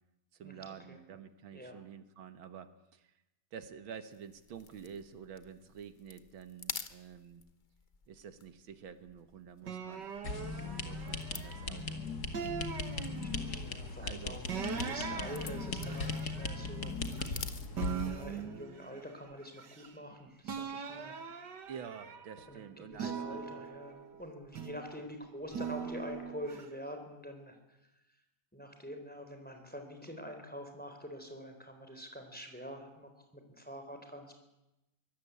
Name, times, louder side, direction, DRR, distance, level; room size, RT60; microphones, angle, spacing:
voice 1, 0.3-3.1 3.5-7.4 8.1-10.1 10.8-12.4 14.0-14.4 21.7-23.4, right 7 dB, 85° right, 10 dB, 2.1 m, -49 dB
sound 1, 4.1-18.5, left 5 dB, 35° left, 0.8 m, -51 dB
sound 2, 9.6-11.8 12.3-13.7 14.5-17.4 17.8-20.1 20.4-22.5 22.9-24.9 25.5-26.7, right 7 dB, 60° right, 2.2 m, -41 dB
sound 3, 10.2-18.1, left 3 dB, 50° left, 2.5 m, -38 dB
voice 2, 13.1-16.9 18.1-21.2 22.5-27.8 28.5-34.3, equal, 5° left, 5 dB, 3.9 m, -46 dB
24.0 x 19.5 x 8.4 m, 0.94 s
omnidirectional pair, 2.1 m